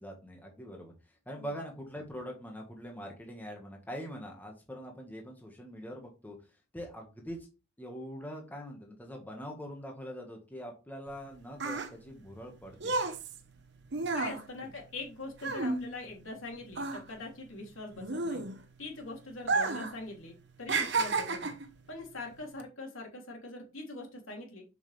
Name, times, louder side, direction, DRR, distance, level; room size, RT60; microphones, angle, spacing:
voice 1, 0.0-6.4 6.7-7.5 7.8-12.9, equal, 10° left, 1 dB, 1.6 m, -43 dB
sound 1, 11.1-16.4 16.7-18.9 19.4-20.0 20.2-21.7 22.4-22.6, right 3 dB, 55° right, 1.1 m, -32 dB
voice 2, 14.1-18.4 18.8-21.6 21.9-24.6, left 2 dB, 70° left, 0 dB, 3.1 m, -43 dB
7.2 x 6.6 x 3.4 m, 0.31 s
head